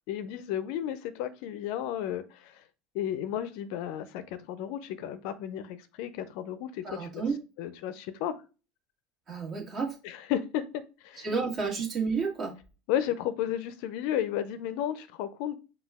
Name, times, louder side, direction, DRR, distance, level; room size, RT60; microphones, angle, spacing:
voice 1, 0.1-2.6 2.9-7.2 7.6-8.4 10.0-11.4 12.9-15.5, left 10 dB, 65° left, 0.5 m, -33 dB
voice 2, 6.8-7.4 9.3-10.0 11.2-12.5, right 5 dB, 40° right, 1.6 m, -31 dB
5.2 x 2.3 x 3.5 m
hypercardioid pair, 95°, 0 cm